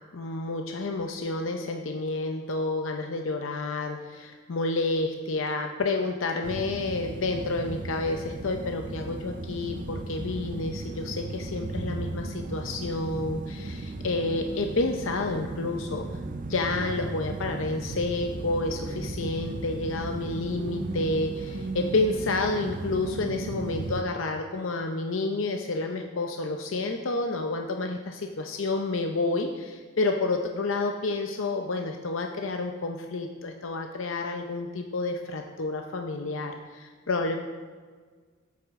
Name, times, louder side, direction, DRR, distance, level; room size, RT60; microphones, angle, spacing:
voice 1, 0.1-16.0 16.5-37.4, left 2 dB, 65° left, 3 dB, 0.6 m, -29 dB
sound 1, 6.4-24.0, right 3 dB, 40° right, 0.5 m, -36 dB
12.5 x 8.3 x 3.6 m, 1.5 s
head